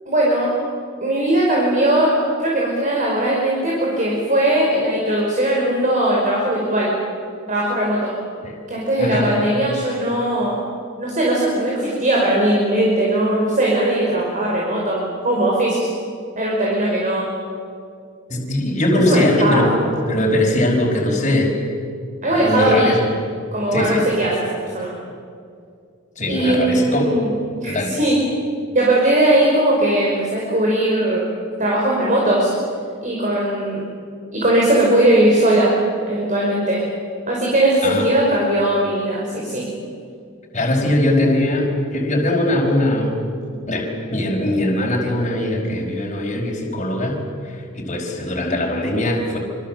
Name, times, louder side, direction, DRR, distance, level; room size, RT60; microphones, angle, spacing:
voice 1, 0.1-0.5 1.0-2.1 2.4-6.9 7.5-8.1 8.7-10.6 11.0-15.9 16.4-17.3 18.9-19.8 22.2-22.9 23.5-24.3 24.6-24.9 26.3-28.2 28.7-31.2 31.6-32.5 33.0-33.8 34.3-35.7 36.0-36.8 37.3-39.6, right 1 dB, 35° right, -3 dB, 5.3 m, -19 dB
voice 2, 9.0-9.3 16.8-16.9 18.3-19.7 20.1-21.5 22.3-23.0 23.7-24.0 26.2-27.2 27.7-28.0 37.8-38.1 40.5-43.2 43.7-47.2 47.5-49.4, left 1 dB, 35° left, -1 dB, 5.0 m, -20 dB
26.5 x 25.5 x 7.6 m, 2.3 s
head